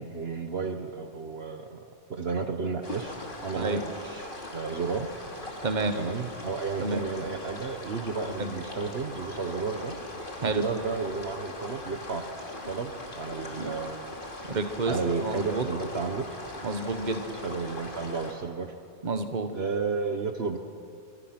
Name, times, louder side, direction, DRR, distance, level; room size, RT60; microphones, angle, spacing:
voice 1, 0.0-1.8 2.1-5.5 5.9-10.0 10.4-12.2 12.7-14.1 14.4-14.6 14.9-16.3 17.3-18.7 19.5-20.6, right 4 dB, 55° right, 5 dB, 1.3 m, -32 dB
sound 1, 2.8-18.3, left 1 dB, 40° left, 2.8 m, -40 dB
voice 2, 14.5-14.9 15.2-15.6 16.6-17.2 19.0-19.5, right 3 dB, 35° right, 7 dB, 1.4 m, -29 dB
24.5 x 24.0 x 6.0 m, 2.4 s
omnidirectional pair, 1.3 m